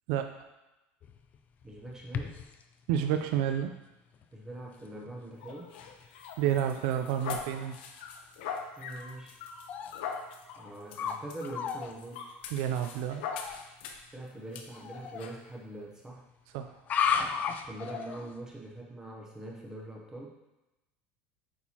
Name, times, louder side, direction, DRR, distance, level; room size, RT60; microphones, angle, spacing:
sound 1, 1.0-2.6 3.3-3.4 4.1-4.2 4.8-5.1 5.5-5.6 5.8-6.1 6.6-6.7 9.7-9.9 10.5-11.2 11.4-11.9 13.3-13.6 14.7-15.2 16.8-18.4, left 7 dB, 30° left, 0.4 m, -34 dB
voice 1, 1.6-2.4 4.3-5.8 8.8-9.4 10.6-12.2 14.1-16.3 17.6-20.4, right 1 dB, 10° right, -2 dB, 0.8 m, -43 dB
voice 2, 2.9-3.7 6.4-7.8 12.5-13.2 16.5-16.7, right 10 dB, 65° right, 6 dB, 0.4 m, -29 dB
sound 2, 5.4-14.1 14.5-14.7 15.2-15.4, left 6 dB, 90° left, 0.7 m, -42 dB
8.3 x 4.4 x 2.9 m, 1.0 s
cardioid pair, 155°, 5 cm